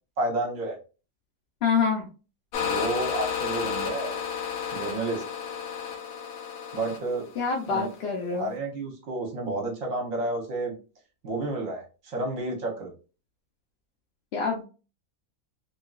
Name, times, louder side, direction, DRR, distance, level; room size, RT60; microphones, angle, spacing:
voice 1, 0.2-0.8 2.6-4.2 4.7-5.2 6.7-7.3 7.7-7.9 8.3-10.7 11.2-12.9, right 2 dB, 65° right, 1 dB, 1.3 m, -30 dB
voice 2, 1.6-2.1 7.4-8.5 14.3-14.6, left 5 dB, 60° left, 0 dB, 0.7 m, -26 dB
sound 1, 2.5-8.0, left 7 dB, 80° left, 1.1 m, -32 dB
3.0 x 2.7 x 2.3 m, 0.33 s
omnidirectional pair, 1.5 m